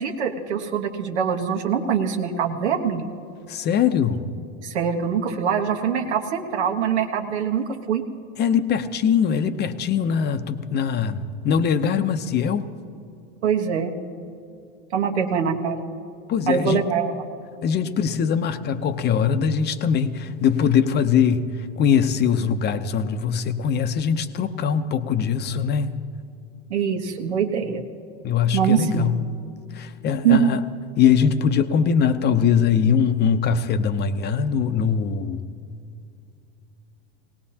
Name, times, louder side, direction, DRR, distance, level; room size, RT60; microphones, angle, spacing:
voice 1, 0.0-3.1 4.6-8.0 13.4-13.9 14.9-15.8 16.5-17.2 26.7-27.8 28.5-29.1 30.2-30.5, right 7 dB, 90° right, 3 dB, 1.4 m, -23 dB
voice 2, 3.5-4.2 8.4-12.6 16.3-16.8 17.6-25.9 28.2-29.2 29.7-30.6 31.0-35.4, left 7 dB, 30° left, 10 dB, 0.7 m, -22 dB
19.0 x 18.0 x 2.9 m, 2.6 s
supercardioid pair, 115°, 33 cm